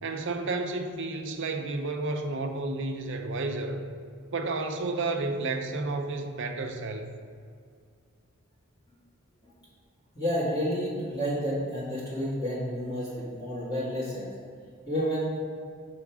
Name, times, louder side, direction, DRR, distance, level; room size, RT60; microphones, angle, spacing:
voice 1, 0.0-3.9 4.3-7.1, right 3 dB, 55° right, 4 dB, 0.6 m, -31 dB
voice 2, 10.2-14.3 14.9-15.4, equal, 20° left, -10 dB, 1.8 m, -30 dB
7.2 x 4.5 x 4.8 m, 2.2 s
head